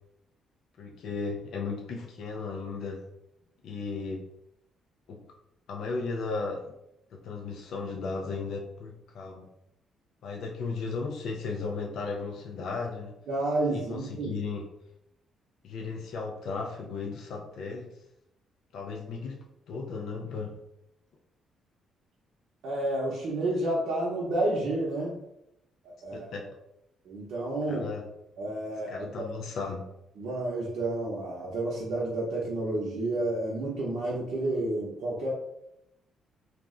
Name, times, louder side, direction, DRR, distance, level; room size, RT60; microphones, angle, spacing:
voice 1, 0.8-3.0 3.6-4.3 5.1-5.2 5.7-6.7 7.2-9.5 10.2-13.1 13.7-14.6 15.6-17.9 18.7-20.6 26.1-26.5 27.7-28.0 28.9-29.9, left 4 dB, 75° left, 1 dB, 0.3 m, -35 dB
voice 2, 13.3-14.4 22.6-25.2 25.8-26.3 27.1-27.9 28.4-29.3 30.2-35.3, right 2 dB, 70° right, -6 dB, 0.6 m, -30 dB
2.4 x 2.1 x 3.5 m, 0.83 s
cardioid pair, 90°, 0 cm